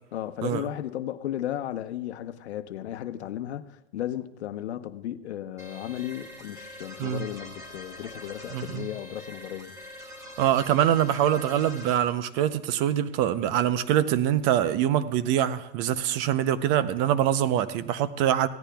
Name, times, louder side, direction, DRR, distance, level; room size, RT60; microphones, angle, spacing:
voice 1, 0.1-9.7, left 12 dB, 85° left, 1.0 m, -35 dB
sound 1, 5.6-12.0, left 1 dB, 10° right, 1.6 m, -44 dB
voice 2, 8.5-8.9 10.4-18.5, right 11 dB, 35° right, 0.7 m, -24 dB
17.0 x 14.0 x 2.3 m
supercardioid pair, 140°, 33 cm